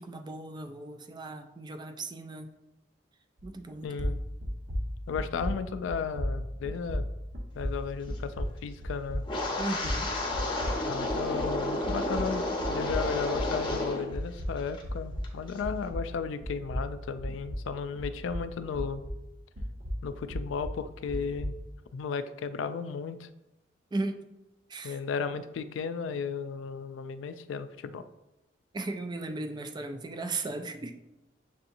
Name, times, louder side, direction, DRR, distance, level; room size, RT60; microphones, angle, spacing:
voice 1, 0.0-2.5 3.4-4.2 9.6-10.1 23.9-24.2 24.7-25.0 28.7-31.1, right 2 dB, 25° right, 7 dB, 0.3 m, -36 dB
sound 1, 3.4-3.7 4.0-11.6 11.8-16.2 16.4-19.3 19.6-21.6, equal, 65° right, 0.9 m, -35 dB
voice 2, 3.8-4.2 5.1-7.1 7.6-9.2 10.9-19.0 20.0-21.6 21.9-23.3 24.8-28.0, left 5 dB, 85° left, 11 dB, 0.3 m, -34 dB
Wind, 9.2-14.1 14.4-14.8 15.2-15.5, left 2 dB, 25° left, 0.7 m, -31 dB
6.6 x 2.7 x 2.6 m, 0.96 s
head